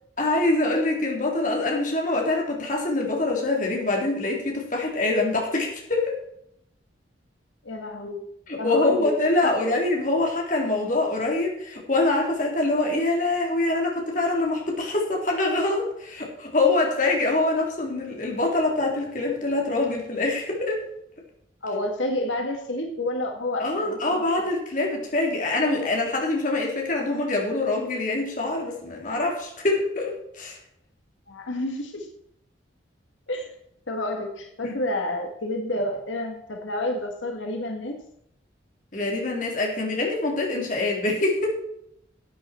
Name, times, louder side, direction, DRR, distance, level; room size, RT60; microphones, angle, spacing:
voice 1, 0.2-6.2 8.5-20.8 23.6-30.6 34.6-34.8 38.9-41.5, left 2 dB, 45° left, 0 dB, 3.6 m, -24 dB
voice 2, 7.7-8.2 8.6-9.1 9.4-9.5 21.6-24.5 31.3-32.1 33.3-33.5 33.9-38.0, left 1 dB, 90° left, 3 dB, 1.9 m, -29 dB
12.0 x 8.7 x 4.5 m, 0.74 s
head